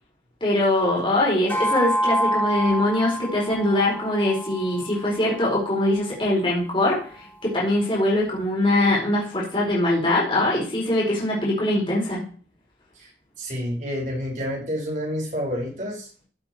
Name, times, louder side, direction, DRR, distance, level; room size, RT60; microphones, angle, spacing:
voice 1, 0.4-12.2, left 1 dB, 30° left, -4 dB, 4.8 m, -22 dB
sound 1, 1.5-6.1, right 1 dB, 10° left, 1.5 m, -27 dB
voice 2, 13.4-16.1, equal, 45° right, -1 dB, 5.5 m, -29 dB
15.0 x 7.6 x 4.6 m, 0.42 s
head